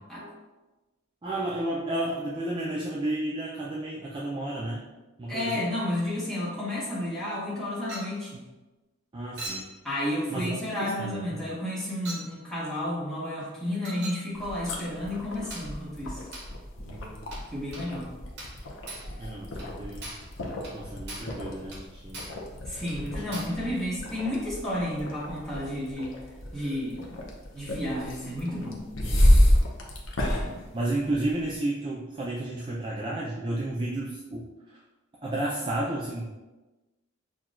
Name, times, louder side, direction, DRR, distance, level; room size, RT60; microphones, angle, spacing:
voice 1, 1.2-4.9 5.2-5.6 9.1-9.7 10.3-11.4 16.8-17.2 19.2-20.1 20.7-22.3 23.0-23.9 29.0-29.2 30.7-34.8 35.2-36.2, right 1 dB, 25° right, -5 dB, 0.4 m, -32 dB
voice 2, 5.3-8.4 9.8-16.2 17.5-18.1 22.6-26.1 26.5-27.2 27.5-28.8 30.4-30.6, left 1 dB, 5° left, -8 dB, 1.1 m, -32 dB
Chink clink, 7.9-8.2 9.4-9.7 10.7-10.9 12.1-12.3 13.8-14.3 15.5-15.7 16.3-16.5 17.3-17.5 17.7-17.9 18.4-18.6 18.9-19.1 19.6-19.7 20.0-20.3 20.6-20.8 21.1-21.4 21.7-21.9 22.1-22.4 22.9-23.0 23.3-23.6, right 2 dB, 55° right, 1.2 m, -40 dB
sound 1, 14.3-31.6, equal, 75° left, 0.6 m, -29 dB
6.0 x 2.3 x 2.4 m, 1.1 s
head